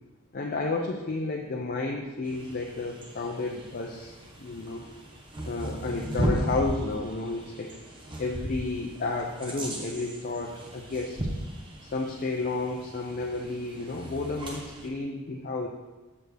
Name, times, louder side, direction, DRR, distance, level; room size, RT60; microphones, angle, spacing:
voice 1, 0.3-4.1 4.4-4.8 5.5-7.8 8.2-11.2 11.8-15.7, left 3 dB, 40° left, 0 dB, 0.5 m, -32 dB
sound 1, 2.2-14.9, right 1 dB, 25° right, 0.8 m, -36 dB
6.6 x 6.2 x 3.3 m, 1.2 s
head